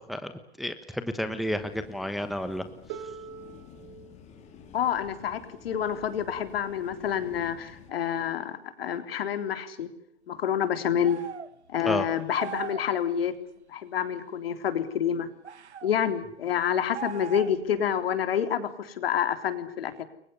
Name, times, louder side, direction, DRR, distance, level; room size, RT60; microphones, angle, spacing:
voice 1, 0.6-2.7 11.8-12.1, equal, ahead, 9 dB, 1.2 m, -31 dB
sound 1, 1.5-7.9, left 7 dB, 20° left, 3.7 m, -51 dB
Harp, 2.9-8.7 9.7-9.8, right 7 dB, 30° right, 3.2 m, -48 dB
voice 2, 4.7-9.9 10.3-11.2 11.7-13.3 13.7-15.3 15.8-20.0, left 9 dB, 60° left, 9 dB, 3.7 m, -28 dB
sound 2, 11.0-11.5 12.3-12.9 15.4-15.9 16.9-17.7, right 7 dB, 85° right, 1.6 m, -38 dB
29.5 x 23.5 x 6.9 m, 0.68 s
hypercardioid pair, 145°, 33 cm